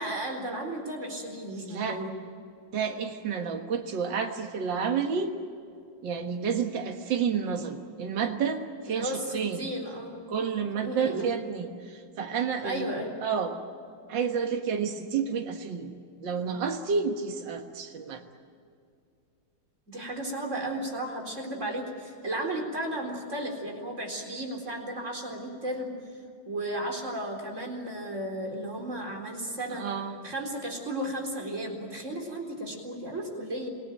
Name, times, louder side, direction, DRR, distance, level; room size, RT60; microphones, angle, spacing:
voice 1, 0.0-2.1 8.9-10.3 10.6-11.3 12.6-13.2 19.9-25.9 26.5-29.8 30.2-33.7, right 1 dB, 40° right, 1 dB, 4.4 m, -34 dB
voice 2, 1.7-2.0 2.7-5.3 6.0-9.7 10.3-12.9 13.2-13.6 14.1-15.9 16.2-18.2 29.7-30.2, right 6 dB, 75° right, 3 dB, 2.1 m, -30 dB
27.5 x 18.5 x 9.2 m, 2.4 s
omnidirectional pair, 2.0 m